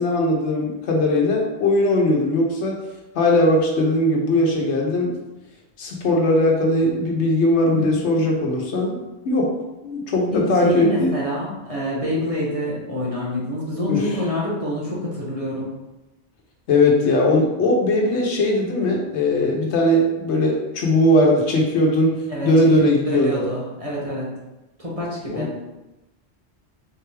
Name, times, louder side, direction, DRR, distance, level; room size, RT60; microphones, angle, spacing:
voice 1, 0.0-2.8 3.1-5.2 5.8-9.0 9.2-9.6 9.8-11.1 13.9-14.1 16.7-23.5 25.3-25.5, left 1 dB, 90° left, 0 dB, 1.1 m, -19 dB
voice 2, 7.7-8.2 10.3-15.7 22.3-22.5 23.0-24.3 24.8-25.5, left 1 dB, 35° right, -5 dB, 1.1 m, -27 dB
3.9 x 3.3 x 3.3 m, 1.0 s
omnidirectional pair, 1.1 m